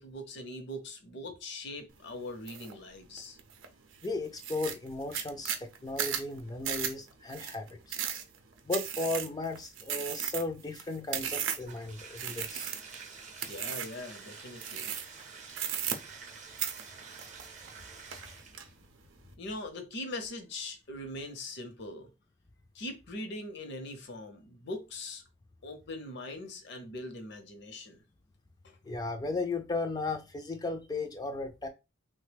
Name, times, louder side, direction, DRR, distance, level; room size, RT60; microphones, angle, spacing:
voice 1, 0.0-3.4 13.4-14.9 19.4-22.1 22.7-25.2 25.6-28.0, left 1 dB, 65° left, 0.7 m, -41 dB
sound 1, 2.5-2.7 3.2-3.7 4.0-4.1 4.4-11.8 12.2-13.0 13.4-14.0 14.6-15.2 15.5-16.3 16.6-17.8 18.1-18.6, right 9 dB, 85° right, 0.5 m, -35 dB
voice 2, 4.0-8.0 8.6-12.7 28.8-31.7, left 3 dB, 20° left, 0.3 m, -35 dB
Bathtub (filling or washing), 11.5-18.8, right 5 dB, 40° right, 0.7 m, -49 dB
3.2 x 2.1 x 3.3 m
head